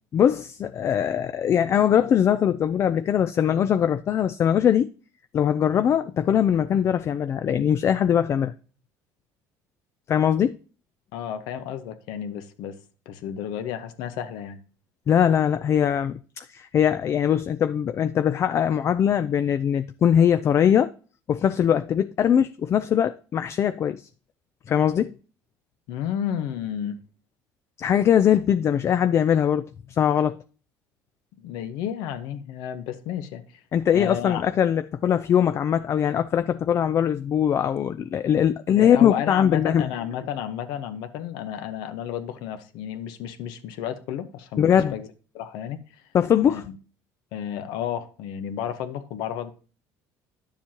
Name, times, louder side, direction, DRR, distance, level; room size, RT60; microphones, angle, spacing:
voice 1, 0.1-4.9 5.3-8.5 10.1-10.5 15.1-20.9 21.3-24.0 24.7-25.1 27.8-29.7 30.0-30.4 33.7-39.9 44.6-44.9 46.1-46.6, left 9 dB, 40° left, 0.4 m, -21 dB
voice 2, 11.1-12.8 13.0-14.6 25.9-27.0 31.4-33.4 33.9-34.4 38.8-45.1 45.3-46.0 46.5-46.8 47.3-49.5, left 9 dB, 80° left, 1.1 m, -32 dB
10.5 x 7.1 x 2.9 m
cardioid pair, 120°, 7 cm